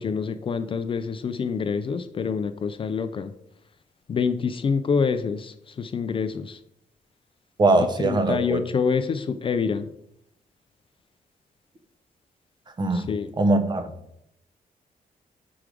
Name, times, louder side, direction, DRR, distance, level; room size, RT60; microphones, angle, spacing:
voice 1, 0.0-3.3 4.1-6.6 8.0-9.9 12.9-13.3, left 5 dB, 35° left, 10 dB, 0.4 m, -26 dB
voice 2, 7.6-8.6 12.8-13.1 13.4-13.9, right 2 dB, 30° right, 8 dB, 0.7 m, -21 dB
6.1 x 4.7 x 5.0 m, 0.76 s
wide cardioid pair, 150°, 15 cm